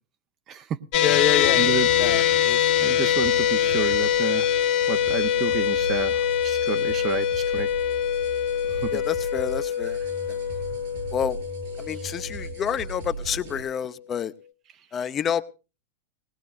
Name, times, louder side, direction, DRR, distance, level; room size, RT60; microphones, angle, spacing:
voice 1, 0.5-0.8 1.1-1.3 1.6-1.9 2.2-2.5 2.8-4.5 4.9-7.7 8.8-9.0, right 10 dB, 30° right, 0.6 m, -31 dB
sound 1, 0.9-13.3, left 10 dB, 50° left, 1.2 m, -24 dB
voice 2, 1.0-2.6 8.9-10.0 11.1-11.4 11.8-14.3 14.9-15.4, left 8 dB, 25° left, 0.7 m, -28 dB
sound 2, 1.0-13.6, right 3 dB, 75° right, 7.0 m, -38 dB
19.5 x 18.5 x 2.4 m
supercardioid pair, 140°, 0 cm